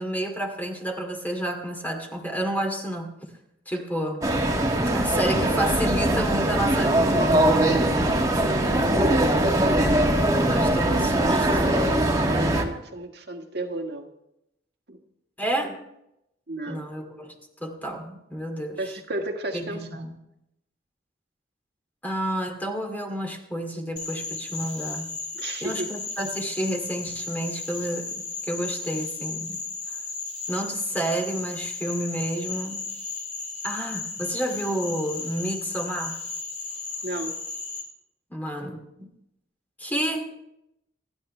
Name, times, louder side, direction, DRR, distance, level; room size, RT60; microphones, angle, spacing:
voice 1, 0.0-3.1 3.7-4.3 4.9-8.0 10.5-11.6 15.4-15.8 16.7-17.3 17.6-19.0 19.5-20.2 22.0-25.1 25.6-29.6 30.5-32.9 33.6-36.2 38.3-39.1 39.8-40.3, right 1 dB, 10° left, 3 dB, 2.4 m, -30 dB
sound 1, 4.2-12.6, right 1 dB, 20° right, 1.9 m, -21 dB
voice 2, 8.4-10.3 12.3-14.1 14.9-15.0 15.6-15.7 16.5-16.8 18.8-20.0 25.3-25.9 37.0-37.4, right 2 dB, 65° right, 3 dB, 1.7 m, -34 dB
Frog, 24.0-37.8, left 4 dB, 40° left, 3.3 m, -35 dB
28.5 x 11.0 x 3.3 m, 0.83 s
head